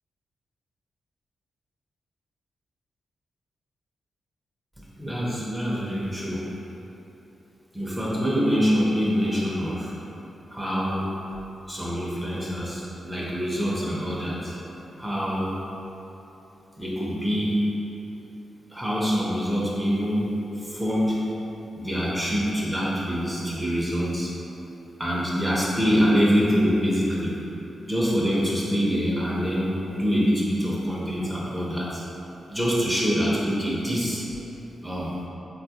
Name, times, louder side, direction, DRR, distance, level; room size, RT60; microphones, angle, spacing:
voice 1, 5.0-6.4 7.7-9.9 10.5-11.1 11.7-14.5 15.0-15.6 16.8-17.6 18.7-21.2 21.8-24.3 25.0-27.3 27.9-32.0 32.5-34.2 34.8-35.2, equal, 10° right, -6 dB, 0.5 m, -25 dB
3.8 x 2.3 x 2.7 m, 3.0 s
cardioid pair, 70°, 0 cm